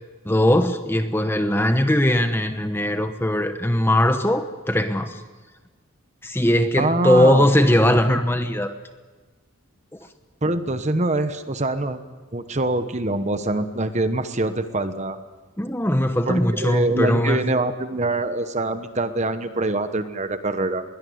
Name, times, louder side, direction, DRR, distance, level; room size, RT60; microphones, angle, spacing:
voice 1, 0.2-5.2 6.2-8.7 9.9-10.0 15.6-17.4, left 1 dB, 10° left, 8 dB, 1.0 m, -20 dB
voice 2, 6.8-7.5 10.4-12.0 12.3-15.2 16.3-20.8, right 2 dB, 30° right, 10 dB, 1.2 m, -24 dB
21.5 x 18.0 x 9.5 m, 1.3 s
head